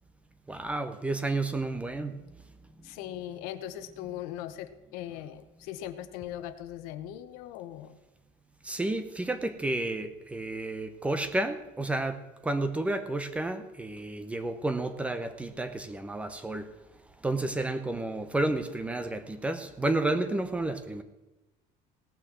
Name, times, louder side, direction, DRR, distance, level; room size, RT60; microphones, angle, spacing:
voice 1, 0.5-2.2 8.6-16.7 17.2-21.0, right 2 dB, 10° right, 9 dB, 0.7 m, -31 dB
voice 2, 2.8-8.0, left 12 dB, 75° left, 11 dB, 1.0 m, -40 dB
17.5 x 6.3 x 7.4 m, 1.1 s
cardioid pair, 170°, 15 cm